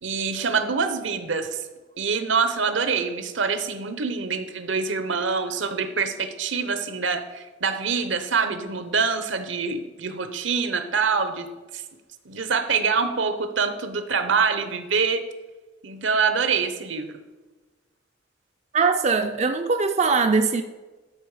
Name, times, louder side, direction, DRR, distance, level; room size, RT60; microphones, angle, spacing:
voice 1, 0.0-1.7 2.0-11.5 11.7-11.8 12.2-15.2 15.8-17.1, right 5 dB, 75° right, 0.9 m, -25 dB
voice 2, 18.7-20.6, right 4 dB, 35° right, 0.4 m, -21 dB
12.0 x 5.3 x 4.9 m
head